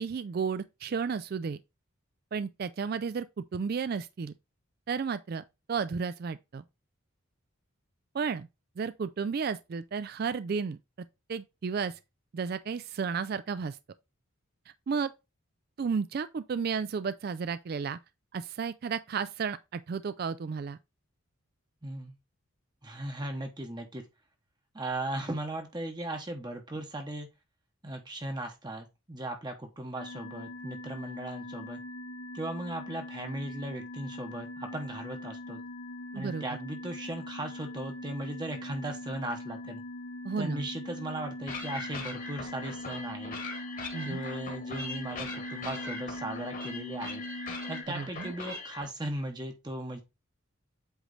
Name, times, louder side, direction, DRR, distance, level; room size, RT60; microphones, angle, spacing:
voice 1, 0.0-1.6 2.3-4.3 4.9-6.6 8.1-8.5 8.8-10.8 11.3-12.0 12.3-13.8 14.9-15.1 15.8-18.0 18.3-20.8 36.1-36.4 40.2-40.7 43.9-44.2 47.9-48.3, right 5 dB, 45° right, 0.3 m, -33 dB
voice 2, 21.8-22.1 22.8-24.0 24.7-27.3 27.8-31.8 32.3-35.6 36.1-39.8 40.4-43.4 44.0-47.2 47.7-50.0, right 1 dB, 20° right, 0.9 m, -37 dB
sound 1, 30.0-47.8, left 1 dB, 85° left, 1.3 m, -41 dB
sound 2, 41.5-48.9, left 3 dB, 40° left, 1.4 m, -41 dB
8.1 x 3.2 x 3.9 m
head